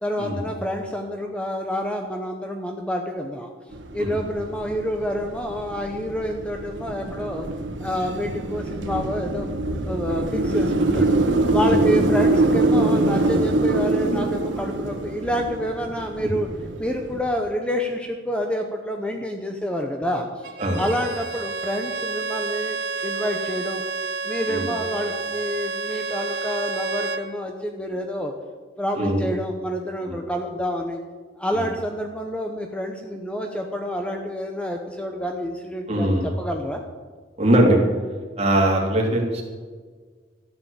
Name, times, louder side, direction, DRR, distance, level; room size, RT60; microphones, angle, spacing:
voice 1, 0.0-3.5 3.9-7.4 7.8-9.5 9.8-11.1 11.5-16.5 16.8-20.5 20.8-23.8 24.2-28.3 28.8-31.0 31.4-36.8, equal, 5° left, 3 dB, 0.9 m, -28 dB
sound 1, 3.7-17.2, right 2 dB, 90° right, 1.4 m, -24 dB
Bowed string instrument, 20.4-27.3, right 4 dB, 70° right, 1.1 m, -30 dB
voice 2, 28.9-29.3 30.1-30.2 31.5-31.6 35.9-36.3 37.4-37.8 38.4-39.4, right 1 dB, 35° right, -1 dB, 3.0 m, -21 dB
13.5 x 9.7 x 7.2 m, 1.5 s
head